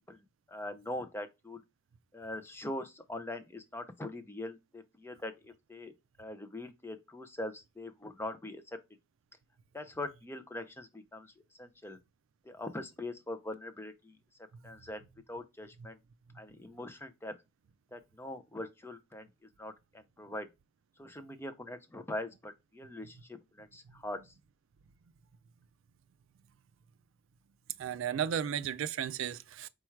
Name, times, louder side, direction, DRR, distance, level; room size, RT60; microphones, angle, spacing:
voice 1, 0.1-1.6 2.1-5.9 6.2-8.8 9.7-11.3 11.6-12.0 12.4-14.2 14.6-15.0 15.3-16.0 16.3-17.3 17.9-20.5 21.0-23.2 23.5-24.3, left 1 dB, 10° left, 0.4 m, -42 dB
voice 2, 27.8-29.7, right 8 dB, 65° right, 0.3 m, -34 dB
4.4 x 2.2 x 4.4 m
head